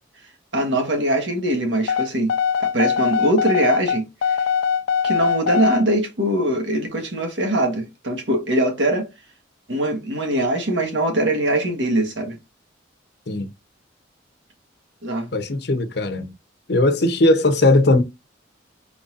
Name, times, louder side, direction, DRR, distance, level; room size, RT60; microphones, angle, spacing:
voice 1, 0.5-2.3 2.6-4.0 4.3-4.4 5.0-9.1 9.7-12.4 15.0-15.3, right 1 dB, 70° right, 1.4 m, -22 dB
sound 1, 1.9-5.8, left 7 dB, 80° left, 0.3 m, -21 dB
voice 2, 15.3-16.3 16.7-18.0, left 2 dB, 60° left, 0.7 m, -18 dB
4.4 x 3.9 x 2.5 m
head